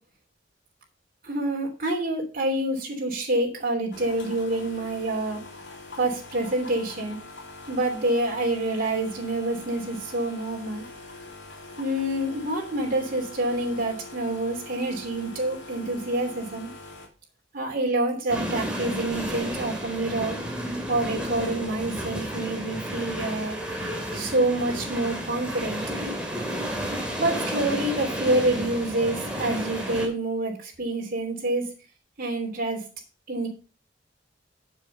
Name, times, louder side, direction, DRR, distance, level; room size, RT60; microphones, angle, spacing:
voice 1, 1.2-5.4 6.0-7.2 7.7-10.8 11.8-16.7 17.5-20.4 20.9-23.6 24.1-25.8 27.2-31.7 32.2-32.8 33.3-33.5, right 1 dB, 50° right, 0 dB, 3.0 m, -27 dB
sound 1, 3.9-17.1, left 2 dB, 80° left, 3.0 m, -43 dB
sound 2, 18.3-30.1, equal, 5° right, 2.5 m, -32 dB
7.2 x 7.1 x 5.5 m, 0.34 s
head